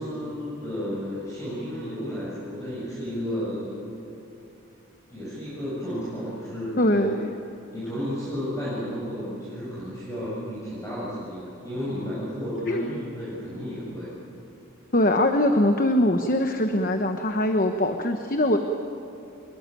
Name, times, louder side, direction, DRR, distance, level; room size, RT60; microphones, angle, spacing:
voice 1, 0.0-3.8 5.1-7.1 7.7-14.1, equal, 15° left, -9 dB, 7.3 m, -32 dB
voice 2, 6.8-7.3 12.7-12.9 14.9-18.6, left 1 dB, 40° left, 6 dB, 1.1 m, -22 dB
26.0 x 22.5 x 9.2 m, 2.9 s
head